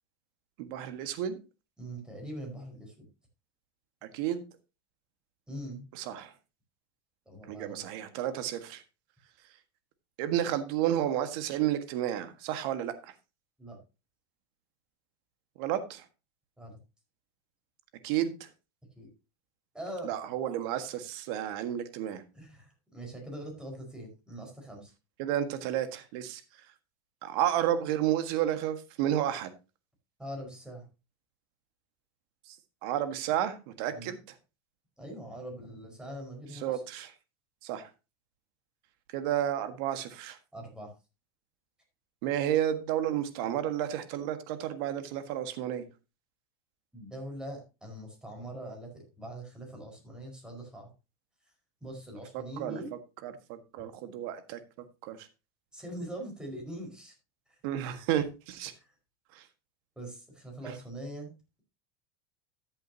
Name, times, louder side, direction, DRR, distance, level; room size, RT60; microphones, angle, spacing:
voice 1, 0.6-1.4 4.0-4.4 5.9-6.3 7.5-8.8 10.2-13.1 15.6-16.0 18.0-18.5 20.0-22.2 25.2-26.4 27.2-29.5 32.5-32.6 32.8-34.2 36.5-37.1 37.6-37.9 39.1-40.4 42.2-45.8 52.3-52.8 53.2-54.6 55.0-55.3 57.6-58.7 59.3-59.4 60.7-60.8, right 11 dB, 65° right, 10 dB, 1.6 m, -31 dB
voice 2, 1.8-3.1 5.5-5.9 7.2-7.8 13.6-13.8 16.6-16.8 19.0-19.1 19.7-20.1 22.3-24.9 30.2-30.8 33.9-34.1 35.0-36.8 40.5-40.9 46.9-50.9 51.8-52.9 55.7-57.1 58.7-58.8 60.0-61.3, right 1 dB, 5° right, 1 dB, 4.9 m, -42 dB
13.5 x 7.7 x 2.8 m, 0.28 s
supercardioid pair, 110°, 13 cm